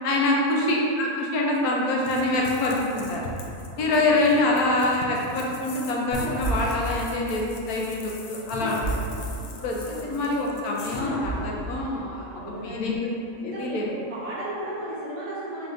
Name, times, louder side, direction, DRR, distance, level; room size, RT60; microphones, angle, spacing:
voice 1, 0.0-3.2 3.8-8.9 9.6-13.1 13.4-13.9, left 2 dB, 85° left, -2 dB, 1.2 m, -25 dB
sound 1, 2.0-11.0, left 3 dB, 65° left, 0.7 m, -42 dB
voice 2, 3.7-4.7 9.7-10.2 12.3-13.0 13.4-15.7, right 1 dB, 70° right, -9 dB, 1.8 m, -36 dB
sound 2, 6.1-8.0 8.5-10.4 10.9-12.6, right 1 dB, 50° left, 1.3 m, -32 dB
5.7 x 3.4 x 2.6 m, 2.6 s
omnidirectional pair, 1.5 m